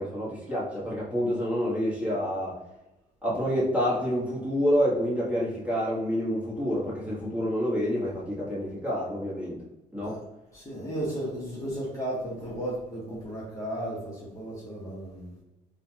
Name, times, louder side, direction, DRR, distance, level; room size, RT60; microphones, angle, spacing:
voice 1, 0.0-2.6 3.2-9.6 9.9-10.1, equal, 10° right, -8 dB, 1.4 m, -28 dB
voice 2, 10.5-15.3, right 1 dB, 20° left, -7 dB, 1.0 m, -34 dB
3.7 x 2.3 x 2.8 m, 0.97 s
cardioid pair, 110°, 17 cm